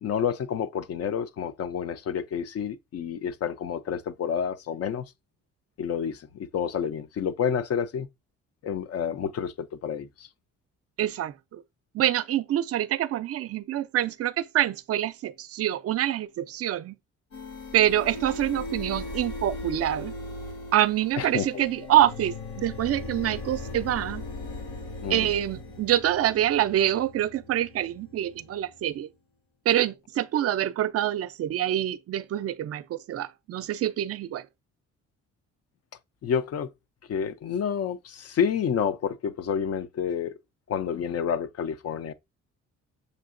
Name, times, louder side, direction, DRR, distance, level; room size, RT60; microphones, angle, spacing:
voice 1, 0.0-5.1 5.8-8.1 8.6-10.3 21.2-21.6 25.0-25.3 36.2-36.7 37.1-40.4 40.7-42.1, left 7 dB, 55° left, 0.5 m, -29 dB
voice 2, 11.0-11.6 11.9-17.0 17.7-20.1 20.7-24.2 25.1-29.1 29.7-34.5, right 12 dB, 50° right, 0.4 m, -26 dB
sound 1, 17.3-28.9, left 2 dB, 75° left, 2.6 m, -38 dB
6.5 x 2.7 x 2.5 m
cardioid pair, 90°, 30 cm